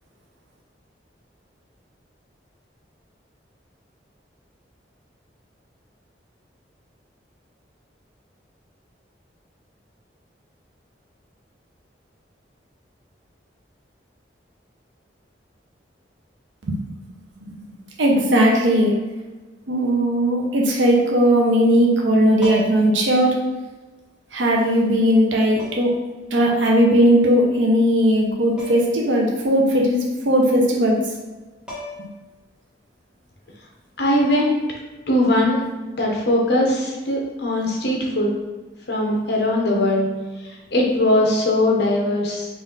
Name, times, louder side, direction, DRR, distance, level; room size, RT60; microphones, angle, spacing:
voice 1, 18.0-18.9 19.7-23.4 24.3-25.9 26.3-31.0 32.0-32.1, equal, 85° right, -1 dB, 0.7 m, -18 dB
sound 1, 22.4-23.0 24.3-24.4 25.6-26.0 28.6-29.0 29.3-29.4 31.3-31.4 31.7-32.3 34.2-34.4, left 1 dB, 5° right, 1.0 m, -36 dB
voice 2, 34.0-34.6 35.1-35.6 35.9-38.4 38.9-40.1 40.4-42.5, left 1 dB, 60° left, -1 dB, 0.9 m, -20 dB
4.1 x 2.6 x 3.8 m, 1.2 s
head